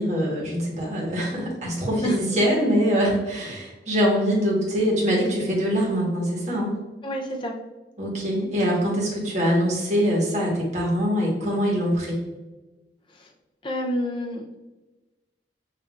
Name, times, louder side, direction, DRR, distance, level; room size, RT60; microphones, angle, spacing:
voice 1, 0.0-6.8 8.0-12.2, equal, 40° right, -4 dB, 1.3 m, -23 dB
voice 2, 7.0-7.5 13.1-13.3 13.6-14.6, equal, 30° left, -1 dB, 0.6 m, -29 dB
5.9 x 2.7 x 2.4 m, 1.1 s
head